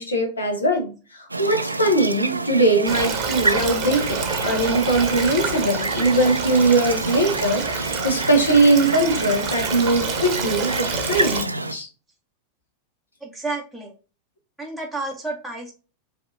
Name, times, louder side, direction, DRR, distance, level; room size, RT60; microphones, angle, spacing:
voice 1, 0.0-11.9, right 2 dB, 75° left, 3 dB, 1.1 m, -21 dB
sound 1, 1.3-11.7, right 2 dB, 85° right, 0.3 m, -28 dB
Stream, 2.9-11.4, right 6 dB, 35° right, 0.8 m, -28 dB
voice 2, 13.2-13.9 14.6-15.7, right 2 dB, ahead, 0 dB, 0.7 m, -31 dB
4.7 x 2.7 x 2.7 m, 0.34 s
figure-of-eight pair, 90°, 0 cm